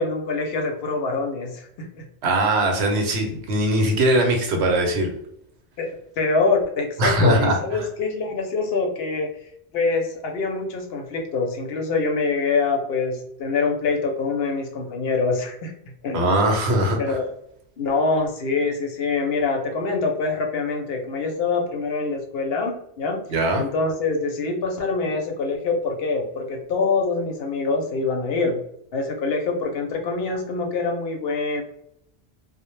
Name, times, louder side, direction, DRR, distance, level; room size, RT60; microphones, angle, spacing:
voice 1, 0.0-2.1 5.8-5.9 6.2-9.3 9.7-15.7 16.0-16.3 17.0-17.3 17.8-23.2 23.6-28.6 28.9-31.6, left 4 dB, 65° left, 2 dB, 0.7 m, -25 dB
voice 2, 2.2-5.1 7.0-7.8 16.1-17.2 23.3-23.6, right 1 dB, 75° right, 3 dB, 0.9 m, -21 dB
2.1 x 2.0 x 3.0 m, 0.71 s
omnidirectional pair, 1.1 m